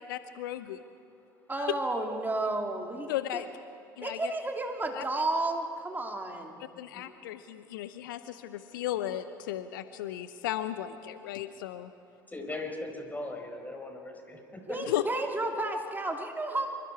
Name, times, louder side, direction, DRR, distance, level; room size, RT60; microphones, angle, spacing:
voice 1, 0.1-0.8 1.6-1.7 3.1-3.5 4.0-4.2 5.0-5.1 6.8-11.9 14.9-15.0, left 13 dB, 70° left, 12 dB, 0.8 m, -35 dB
voice 2, 1.5-3.4 4.0-6.6 14.7-16.7, right 2 dB, 15° right, 2 dB, 2.9 m, -32 dB
voice 3, 12.3-14.8, left 2 dB, 15° left, 3 dB, 4.8 m, -39 dB
26.5 x 24.0 x 4.8 m, 2.5 s
figure-of-eight pair, 65°, 11 cm